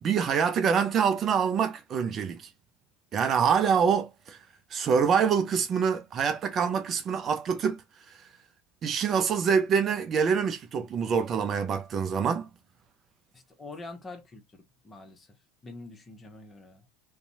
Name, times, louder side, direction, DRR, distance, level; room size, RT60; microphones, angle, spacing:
voice 1, 0.0-2.5 3.1-4.4 4.7-7.8 8.1-8.2 8.8-12.5, right 6 dB, 35° right, 0.4 m, -25 dB
voice 2, 13.3-14.4 14.8-15.3 15.6-16.8, left 3 dB, 20° left, 0.9 m, -44 dB
2.6 x 2.2 x 2.5 m
figure-of-eight pair, 75°, 0 cm